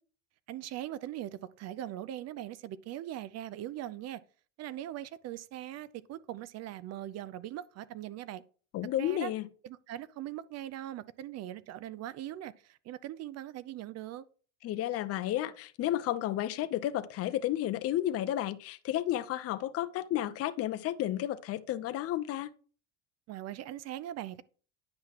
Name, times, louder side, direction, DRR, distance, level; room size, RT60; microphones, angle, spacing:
voice 1, 0.5-4.2 4.6-8.4 9.0-9.3 9.6-14.2 23.3-24.4, right 12 dB, 45° right, 0.5 m, -41 dB
voice 2, 8.7-9.5 14.6-22.5, left 13 dB, 40° left, 0.6 m, -32 dB
9.7 x 5.6 x 2.9 m
supercardioid pair, 95°, 37 cm